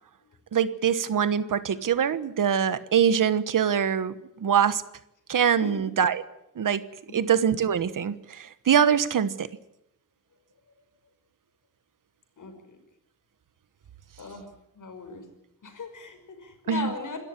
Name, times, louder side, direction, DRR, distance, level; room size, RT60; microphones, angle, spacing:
voice 1, 0.5-4.8 5.3-6.2 6.6-6.8 7.1-9.5 16.7-16.9, right 8 dB, 85° right, 14 dB, 1.3 m, -23 dB
voice 2, 12.4-12.8 14.2-14.5 14.7-15.3 15.6-17.2, left 4 dB, 75° left, 6 dB, 5.7 m, -38 dB
27.0 x 13.5 x 9.9 m, 0.83 s
wide cardioid pair, 90°, 32 cm